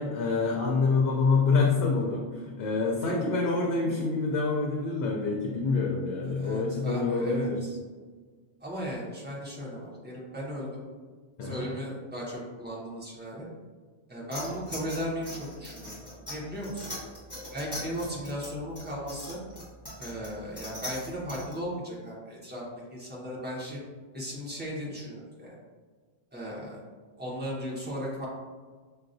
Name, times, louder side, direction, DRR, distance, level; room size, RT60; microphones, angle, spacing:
voice 1, 0.0-7.6 11.4-11.6, left 4 dB, 70° left, -1 dB, 0.8 m, -26 dB
voice 2, 6.3-7.8 8.6-10.8 11.4-13.5 14.1-16.9 17.5-19.4 20.0-22.6 22.9-23.8 24.1-25.5 26.3-26.8 27.2-28.3, equal, 10° right, -6 dB, 0.8 m, -36 dB
sound 1, 14.3-21.5, left 1 dB, 15° left, 1.5 m, -41 dB
5.5 x 2.3 x 2.5 m, 1.5 s
omnidirectional pair, 1.1 m